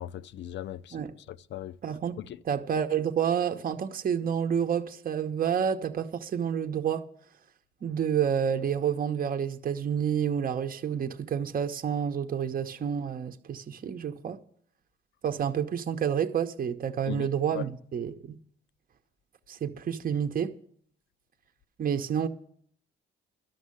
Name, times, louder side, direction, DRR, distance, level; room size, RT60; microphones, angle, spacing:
voice 1, 0.0-1.0 1.3-1.8 2.2-2.4 17.1-17.6, left 12 dB, 65° left, 0.5 m, -38 dB
voice 2, 1.8-2.2 2.4-7.0 7.8-14.4 15.2-18.4 19.5-20.5 21.8-22.3, right 8 dB, 45° right, 0.8 m, -29 dB
12.0 x 6.4 x 9.6 m
cardioid pair, 90°, 20 cm